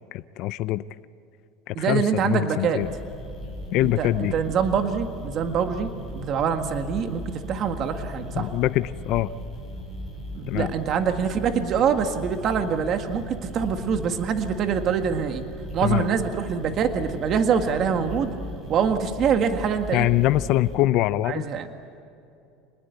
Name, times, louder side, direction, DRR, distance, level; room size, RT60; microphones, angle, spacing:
voice 1, 0.1-0.8 1.7-2.9 3.7-4.3 8.4-9.3 10.5-10.7 15.8-16.1 19.9-21.4, left 15 dB, 55° left, 14 dB, 0.6 m, -23 dB
voice 2, 1.7-2.8 3.8-7.2 7.5-8.5 10.3-15.4 15.7-18.3 18.7-20.1 21.2-21.7, right 7 dB, 40° right, 7 dB, 1.8 m, -25 dB
sound 1, 2.8-20.7, equal, 10° right, 7.2 m, -37 dB
27.0 x 20.0 x 8.1 m, 2.7 s
supercardioid pair, 140°, 0 cm